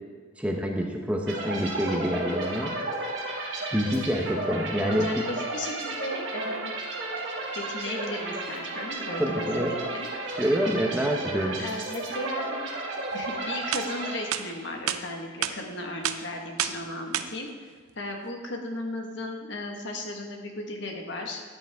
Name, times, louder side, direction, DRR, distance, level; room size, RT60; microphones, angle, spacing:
voice 1, 0.4-2.7 3.7-5.2 9.2-9.7 10.4-11.6, equal, 5° right, 1 dB, 0.8 m, -27 dB
sound 1, 1.3-14.8, right 2 dB, 60° right, 1.6 m, -33 dB
voice 2, 4.8-6.8 7.5-10.1 11.6-12.7 13.1-21.4, left 1 dB, 55° left, 2 dB, 1.5 m, -35 dB
sound 2, 13.2-13.3 13.7-13.8 14.3-14.4 14.9-15.0 15.4-15.5 16.0-16.2 16.6-16.8 17.1-17.3, right 10 dB, 90° right, 0.6 m, -28 dB
13.5 x 8.9 x 3.5 m, 1.5 s
head